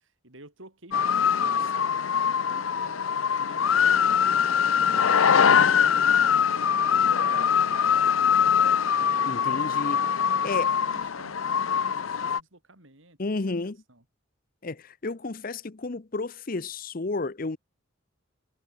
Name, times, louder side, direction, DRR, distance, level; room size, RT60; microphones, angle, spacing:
voice 1, 0.0-8.2 10.3-13.2 13.6-14.0, right 2 dB, 75° right, 5.7 m, -50 dB
sound 1, 0.9-12.4, left 7 dB, 85° left, 0.7 m, -23 dB
voice 2, 9.3-10.1 10.4-10.7 13.2-13.8 14.6-17.6, left 3 dB, 45° left, 0.7 m, -32 dB
head